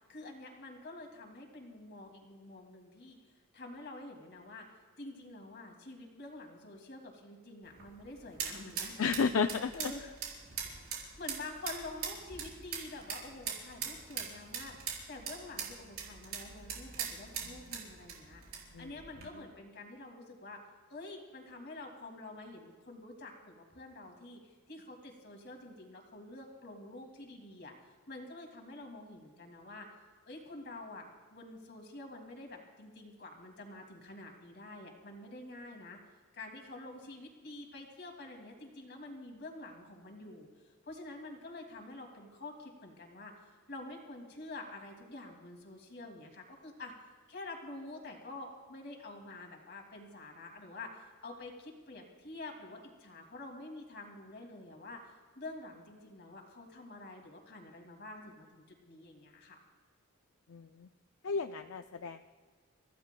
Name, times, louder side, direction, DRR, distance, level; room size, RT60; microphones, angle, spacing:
voice 1, 0.0-3.2 3.5-4.7 5.0-9.1 9.7-10.1 10.9-18.4 18.8-20.6 20.9-29.9 30.3-36.0 36.3-46.9 47.3-59.6, left 2 dB, 50° left, 2 dB, 2.5 m, -48 dB
sound 1, 7.6-19.3, right 7 dB, 80° right, 4.5 m, -42 dB
voice 2, 9.0-9.9 18.7-18.9 60.5-60.9 61.2-62.2, left 5 dB, 70° left, 8 dB, 0.5 m, -32 dB
29.5 x 15.5 x 2.3 m, 1.5 s
head